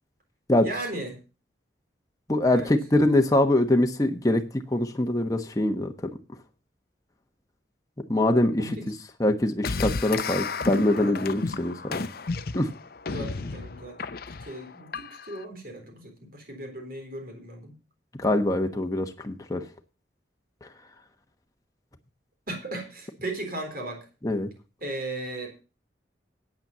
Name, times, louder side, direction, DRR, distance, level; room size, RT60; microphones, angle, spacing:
voice 1, 0.6-1.2 2.5-2.7 8.6-8.9 10.0-11.2 13.1-14.0 14.3-17.8 22.5-24.0 24.8-25.5, right 2 dB, 55° right, 4 dB, 3.7 m, -37 dB
voice 2, 2.3-4.4 4.7-5.9 8.1-8.8 9.2-12.1 12.5-12.7 18.2-19.6 24.2-24.5, left 1 dB, 20° left, 4 dB, 1.1 m, -23 dB
sound 1, 9.6-15.4, left 4 dB, 55° left, 0.7 m, -32 dB
9.0 x 8.8 x 6.7 m, 0.33 s
head